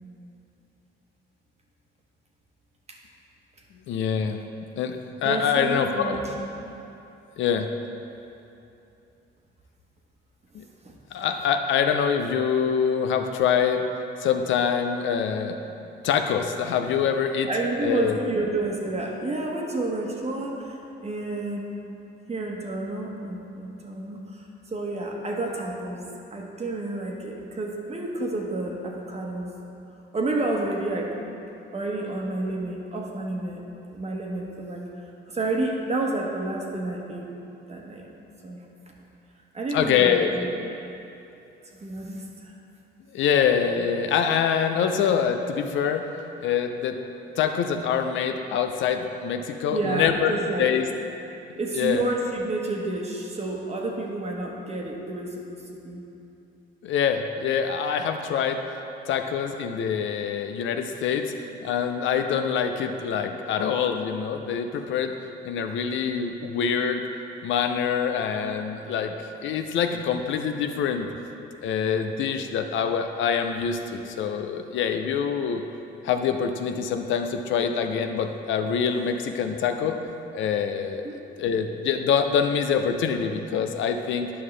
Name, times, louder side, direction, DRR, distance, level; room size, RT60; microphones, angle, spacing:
voice 1, 3.9-4.4 4.8-6.2 7.4-7.7 10.5-10.6 11.1-13.9 14.2-15.6 16.0-17.5 17.8-18.2 39.7-40.3 43.1-46.0 46.4-47.0 47.4-50.9 51.7-52.0 56.8-58.6 59.1-65.2 65.4-67.0 67.4-69.1 69.4-71.1 71.6-75.6 76.0-80.0 80.3-81.0 81.4-84.3, left 7 dB, 75° left, 6 dB, 0.5 m, -25 dB
voice 2, 5.2-6.3 10.8-11.0 17.5-21.7 22.3-26.0 26.3-29.5 30.1-31.1 31.7-33.6 33.9-34.8 35.3-37.3 37.7-38.1 38.4-38.6 39.5-40.5 41.8-42.5 49.7-50.7 51.6-56.0 81.0-81.2, right 2 dB, 35° right, 0 dB, 1.1 m, -30 dB
9.6 x 5.5 x 3.3 m, 2.8 s
cardioid pair, 90°, 20 cm